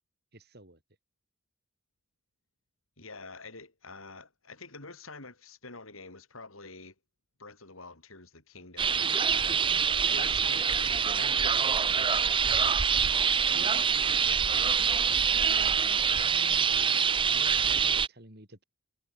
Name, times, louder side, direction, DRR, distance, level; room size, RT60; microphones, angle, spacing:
voice 1, 0.3-0.8 14.5-14.8 16.0-18.6, right 1 dB, 50° right, 6.2 m, -50 dB
voice 2, 3.0-6.9 7.4-9.7 10.0-12.1 12.5-15.8, left 3 dB, 85° left, 6.4 m, -48 dB
sound 1, 8.8-18.1, right 7 dB, 25° right, 0.6 m, -25 dB
head